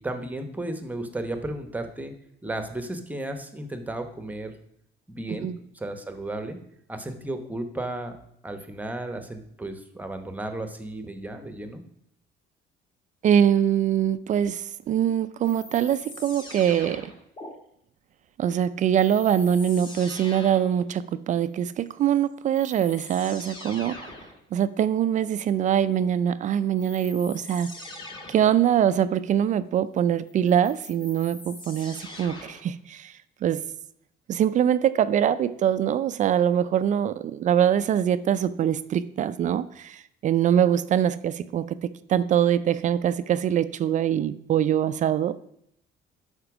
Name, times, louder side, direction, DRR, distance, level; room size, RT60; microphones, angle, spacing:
voice 1, 0.0-2.1 2.4-4.5 5.1-6.6 6.9-8.2 8.4-11.8, right 1 dB, 10° right, 8 dB, 0.9 m, -34 dB
voice 2, 13.2-17.1 18.4-24.1 24.5-27.7 28.3-33.1 33.4-33.6 34.3-41.8 42.1-45.4, right 9 dB, 40° right, 14 dB, 0.4 m, -23 dB
sound 1, 15.4-17.5 19.0-20.8 22.1-22.2 22.5-24.4 26.8-28.6 30.3-32.7, left 2 dB, 25° left, 1.5 m, -42 dB
12.0 x 4.4 x 6.0 m, 0.72 s
cardioid pair, 150°, 19 cm